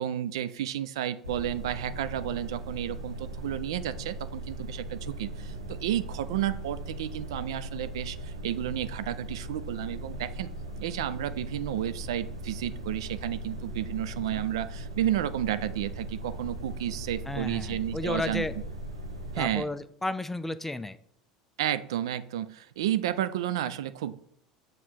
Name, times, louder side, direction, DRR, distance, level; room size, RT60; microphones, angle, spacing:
voice 1, 0.0-10.5 10.8-18.4 19.3-19.7 21.6-24.2, right 11 dB, 65° right, 13 dB, 0.4 m, -32 dB
sound 1, 1.2-19.4, right 1 dB, 85° right, 1.0 m, -39 dB
voice 2, 17.3-18.5 19.4-21.0, left 2 dB, 10° left, 13 dB, 0.4 m, -33 dB
7.3 x 3.2 x 4.3 m, 0.66 s
figure-of-eight pair, 70°, 3 cm